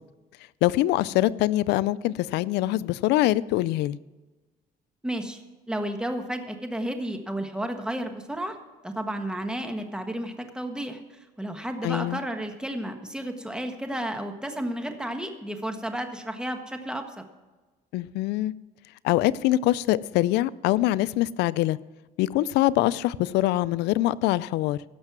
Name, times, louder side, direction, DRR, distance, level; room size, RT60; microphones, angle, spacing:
voice 1, 0.6-4.0 11.8-12.2 17.9-18.5 19.0-21.8 22.2-24.8, left 16 dB, 85° left, 19 dB, 0.4 m, -24 dB
voice 2, 5.0-5.4 5.7-8.6 8.8-17.2, right 1 dB, 5° right, 6 dB, 1.5 m, -32 dB
16.5 x 6.6 x 6.0 m, 1.2 s
cardioid pair, 110°, 17 cm